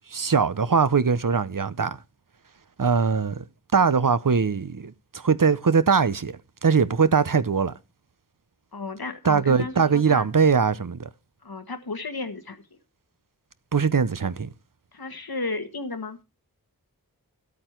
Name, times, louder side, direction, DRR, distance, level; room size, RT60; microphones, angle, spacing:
voice 1, 0.1-2.0 2.8-3.4 3.7-7.7 9.2-11.1 13.7-14.5, right 5 dB, 60° right, 0.8 m, -21 dB
voice 2, 8.7-10.2 11.4-12.6 14.9-16.2, left 3 dB, 80° left, 1.5 m, -33 dB
13.0 x 8.6 x 4.5 m
wide cardioid pair, 40°, 36 cm